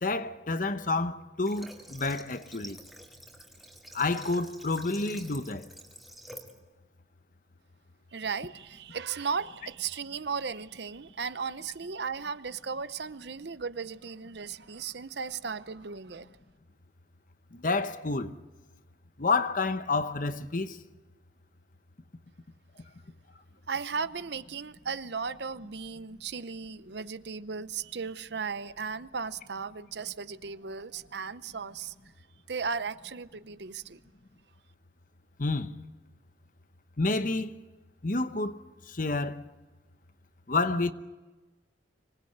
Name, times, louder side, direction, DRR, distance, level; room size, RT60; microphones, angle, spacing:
voice 1, 0.0-2.8 3.9-5.7 17.5-18.3 19.2-20.8 35.4-35.7 37.0-37.5 38.0-39.5 40.5-40.9, left 3 dB, 45° left, 0.9 m, -29 dB
Water / Water tap faucet, 1.4-6.6, right 1 dB, ahead, 2.4 m, -48 dB
voice 2, 8.1-16.3 23.7-31.9 32.5-34.0, right 5 dB, 60° right, 0.7 m, -36 dB
25.5 x 19.0 x 8.0 m
head